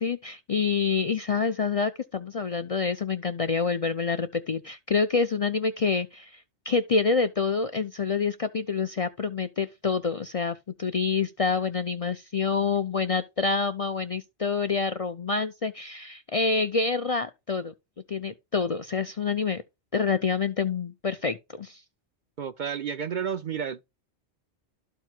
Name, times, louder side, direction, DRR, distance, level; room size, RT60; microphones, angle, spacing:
voice 1, 0.0-17.7 18.1-19.6 19.9-21.8, left 5 dB, 45° left, 0.5 m, -27 dB
voice 2, 22.4-23.9, right 7 dB, 55° right, 0.6 m, -31 dB
13.0 x 4.6 x 2.3 m
omnidirectional pair, 1.1 m